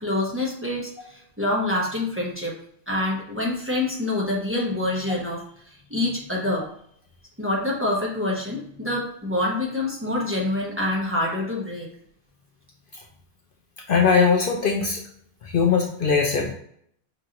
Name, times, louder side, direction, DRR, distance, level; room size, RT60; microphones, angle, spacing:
voice 1, 0.0-2.5 2.9-6.7 7.4-11.9, left 1 dB, 10° right, -4 dB, 1.0 m, -26 dB
voice 2, 13.9-15.0 15.5-16.5, left 5 dB, 60° left, 1 dB, 0.7 m, -20 dB
5.7 x 2.9 x 2.6 m, 0.66 s
omnidirectional pair, 1.1 m